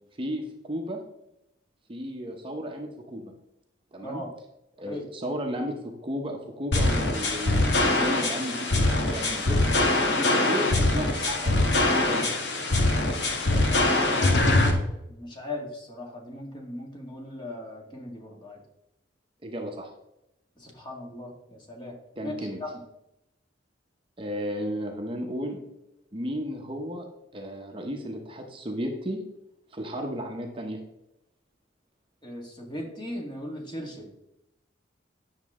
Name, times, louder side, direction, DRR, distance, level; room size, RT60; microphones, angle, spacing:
voice 1, 0.2-1.0 1.9-3.3 3.9-4.2 4.8-12.3 19.4-19.9 22.2-22.6 24.2-25.6 26.1-27.1 27.3-29.2 29.7-30.8 32.6-32.7, equal, 30° right, 2 dB, 0.9 m, -34 dB
sound 1, 6.7-14.7, left 2 dB, 70° left, 1.4 m, -23 dB
voice 2, 13.5-14.6 15.1-18.6 20.6-22.0 22.2-22.7 32.2-34.1, left 1 dB, 25° left, 0 dB, 1.9 m, -38 dB
9.7 x 6.5 x 3.6 m, 0.85 s
head